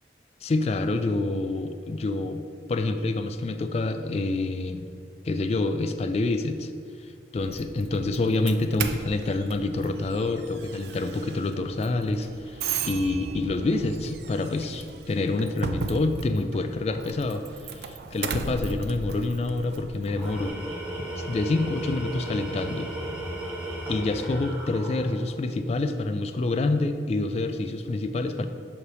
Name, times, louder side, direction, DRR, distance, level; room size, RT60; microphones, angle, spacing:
voice 1, 0.4-2.4 2.7-4.9 5.2-6.7 7.3-20.5 21.0-22.9 23.9-28.5, left 2 dB, 35° left, 8 dB, 0.3 m, -27 dB
Doorbell, 7.4-20.5, right 5 dB, 60° right, 0.4 m, -36 dB
Tools, 20.0-25.4, right 1 dB, 5° right, 1.5 m, -35 dB
7.0 x 3.4 x 6.1 m, 2.3 s
head